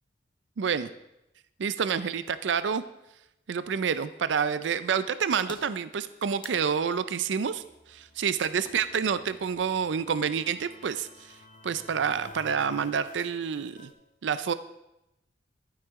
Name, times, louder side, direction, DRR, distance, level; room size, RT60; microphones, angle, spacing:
voice 1, 0.6-0.9 1.6-2.8 3.5-7.6 7.9-11.1 11.6-13.9 14.2-14.5, right 6 dB, 75° right, 14 dB, 0.4 m, -28 dB
sound 1, 3.7-4.5 5.1-5.2 5.3-9.5, left 3 dB, 25° left, 0.9 m, -52 dB
sound 2, 7.4-13.9, left 1 dB, 45° left, 1.5 m, -52 dB
11.5 x 9.6 x 3.6 m, 0.87 s
head